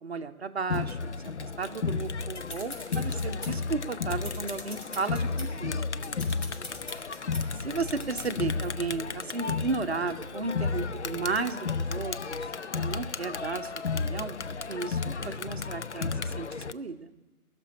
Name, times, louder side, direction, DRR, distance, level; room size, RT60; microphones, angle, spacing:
voice 1, 0.0-5.9 7.5-12.5 12.7-14.4 14.7-16.5 16.7-17.1, right 4 dB, 45° right, 7 dB, 0.7 m, -34 dB
Crowd, 0.7-16.7, left 4 dB, 55° left, 0.5 m, -33 dB
sound 1, 2.0-3.7 4.0-5.5 5.9-7.4 8.0-8.3, left 1 dB, 75° left, 3.7 m, -43 dB
19.0 x 6.8 x 9.7 m, 1.2 s
figure-of-eight pair, 150°, 44 cm